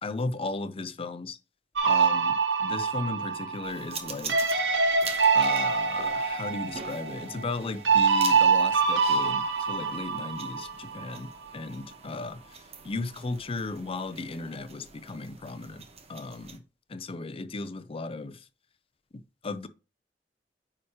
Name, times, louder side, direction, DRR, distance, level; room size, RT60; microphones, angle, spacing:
voice 1, 0.0-1.4 1.8-4.4 5.3-12.6 12.8-16.6 16.9-18.4 19.1-19.7, left 3 dB, 30° left, 0.5 m, -36 dB
sound 1, 1.8-11.2, right 5 dB, 75° right, 1.1 m, -25 dB
sound 2, 3.6-16.6, right 5 dB, 35° right, 0.9 m, -45 dB
8.9 x 4.9 x 2.9 m
head